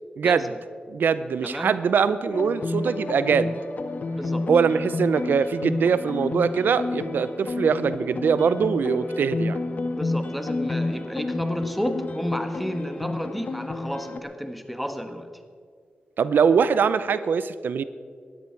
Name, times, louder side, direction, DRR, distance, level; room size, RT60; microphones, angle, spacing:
voice 1, 0.2-0.5 0.9-3.6 4.5-9.6 16.2-17.8, right 6 dB, 85° right, 14 dB, 0.5 m, -22 dB
voice 2, 1.4-1.8 4.1-4.5 9.9-15.3, equal, ahead, 7 dB, 1.5 m, -31 dB
sound 1, 2.3-14.2, left 2 dB, 55° left, 1.2 m, -30 dB
18.5 x 13.5 x 4.6 m, 2.1 s
cardioid pair, 60°, 3 cm